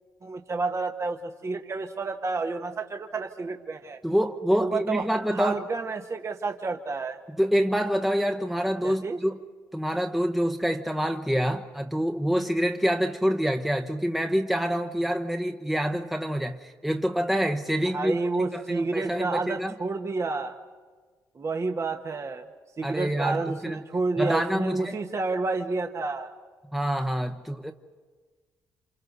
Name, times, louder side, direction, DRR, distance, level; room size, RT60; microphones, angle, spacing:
voice 1, 0.2-4.0 4.6-5.0 5.3-7.2 8.8-9.2 17.9-20.6 21.3-22.4 22.8-26.3, right 3 dB, 40° right, 1.5 m, -30 dB
voice 2, 4.0-5.6 7.3-9.4 9.7-19.7 22.8-23.8 24.2-25.0 26.7-27.7, equal, 5° right, 1.1 m, -26 dB
29.0 x 27.5 x 4.1 m
supercardioid pair, 55°, 8 cm